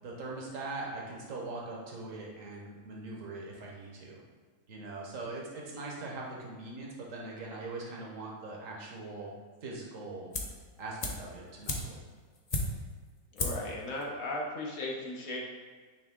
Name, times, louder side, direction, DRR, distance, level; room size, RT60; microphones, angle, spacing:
voice 1, 0.0-4.2 4.7-9.3 9.6-10.3 10.8-12.0, right 2 dB, 60° right, -2 dB, 1.6 m, -41 dB
sound 1, 10.3-10.7 11.0-13.0 13.4-13.7 14.0-14.1, left 2 dB, 35° left, 0.7 m, -34 dB
voice 2, 13.3-15.4, left 2 dB, 65° left, -2 dB, 1.5 m, -36 dB
9.5 x 3.4 x 3.7 m, 1.5 s
omnidirectional pair, 1.6 m